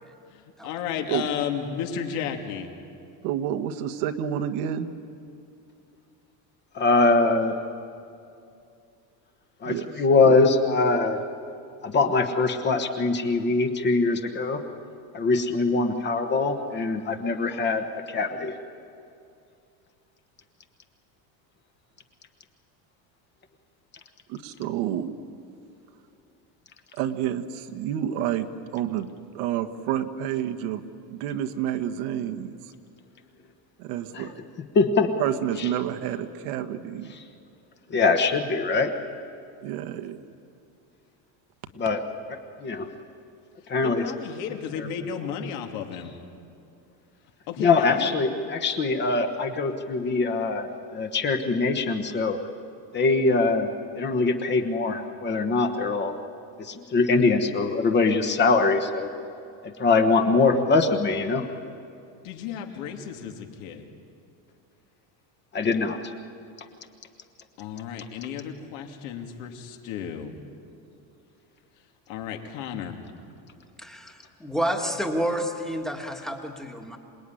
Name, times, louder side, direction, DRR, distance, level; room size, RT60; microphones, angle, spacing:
voice 1, 0.3-2.7 43.8-46.1 47.5-48.1 62.2-63.9 67.6-70.3 72.1-73.0, left 8 dB, 75° left, 4 dB, 2.9 m, -33 dB
voice 2, 3.2-4.9 9.6-9.9 10.2-10.4 24.3-25.2 27.0-29.1 29.3-32.6 33.9-34.4 35.2-37.2 39.6-40.2, right 10 dB, 75° right, 7 dB, 1.5 m, -29 dB
voice 3, 6.7-7.6 9.6-11.2 11.8-14.6 15.1-18.5 34.7-35.1 35.6-35.7 37.9-38.9 41.8-42.0 42.3-42.9 43.7-44.0 47.6-52.4 52.9-53.7 53.9-56.1 56.6-59.1 59.8-61.4 65.5-66.0, left 3 dB, 25° left, 6 dB, 1.2 m, -23 dB
voice 4, 73.8-77.0, equal, ahead, 3 dB, 1.5 m, -29 dB
27.0 x 19.5 x 9.9 m, 2.5 s
cardioid pair, 175°, 43 cm